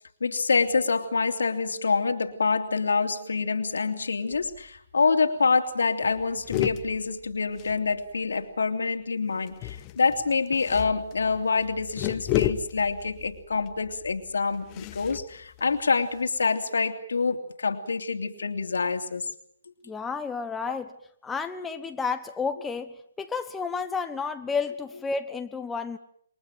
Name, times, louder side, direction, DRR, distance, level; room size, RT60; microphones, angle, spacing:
voice 1, 0.2-19.3 20.7-20.8, left 4 dB, 70° left, 8 dB, 2.8 m, -26 dB
sound 1, 4.3-4.8 5.1-5.2 5.4-5.7 6.0-8.4 9.5-16.4, left 13 dB, 30° left, 1.3 m, -34 dB
voice 2, 19.8-20.9 21.2-26.0, left 5 dB, 10° left, 7 dB, 1.2 m, -31 dB
28.0 x 23.0 x 7.7 m, 0.67 s
figure-of-eight pair, 135°, 0 cm